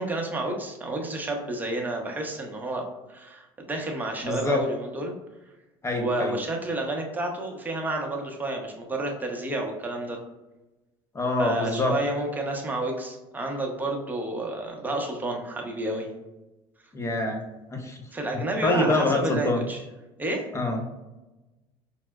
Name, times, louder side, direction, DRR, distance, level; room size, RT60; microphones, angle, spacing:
voice 1, 0.0-5.1 5.9-10.2 11.4-16.1 18.1-19.8 20.2-20.5, right 2 dB, 15° right, 1 dB, 0.7 m, -30 dB
voice 2, 4.2-4.6 5.8-6.3 11.1-11.9 16.9-17.4 17.7-18.0 18.6-19.6 20.5-20.8, left 2 dB, 20° left, 3 dB, 0.6 m, -25 dB
4.4 x 2.0 x 2.2 m, 1.1 s
supercardioid pair, 90°, 12 cm